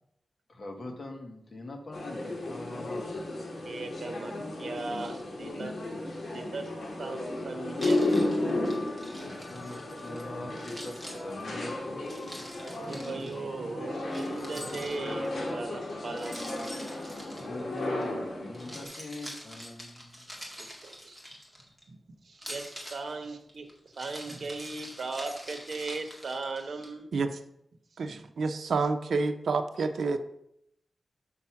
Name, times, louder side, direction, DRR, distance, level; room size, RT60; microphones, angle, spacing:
voice 1, 0.5-3.2 9.1-12.1 17.3-20.5, left 2 dB, 40° left, 3 dB, 1.4 m, -43 dB
sound 1, 1.9-18.8, left 2 dB, 55° left, 2.3 m, -34 dB
voice 2, 3.6-4.3 4.6-5.7 6.1-6.7 7.0-8.4 9.2-9.8 10.4-10.6 12.3-12.4 12.8-16.8 17.2-17.6 20.6-21.2 21.9-27.1 27.9-28.3, right 3 dB, 60° right, 6 dB, 1.1 m, -39 dB
Keys jangling, 7.8-10.2 10.6-13.3 14.1-15.3 16.2-18.0 18.5-21.8 22.3-26.9, equal, ahead, 2.0 m, -45 dB
voice 3, 28.0-30.2, right 4 dB, 80° right, 8 dB, 0.6 m, -28 dB
6.5 x 6.1 x 5.7 m, 0.76 s
wide cardioid pair, 150°, 0 cm